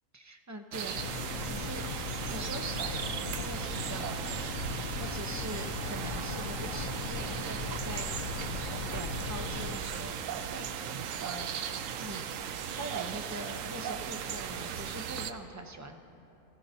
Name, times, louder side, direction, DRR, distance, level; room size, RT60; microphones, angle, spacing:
voice 1, 0.1-1.8 2.3-4.5 5.0-8.5 8.9-10.2 10.5-10.7 11.2-11.5 12.0-16.0, right 1 dB, 20° right, 4 dB, 0.5 m, -43 dB
sound 1, 0.7-15.3, right 8 dB, 80° right, 1.0 m, -37 dB
sound 2, 0.9-9.8, left 5 dB, 90° left, 1.1 m, -38 dB
24.0 x 16.0 x 2.7 m, 2.8 s
omnidirectional pair, 1.4 m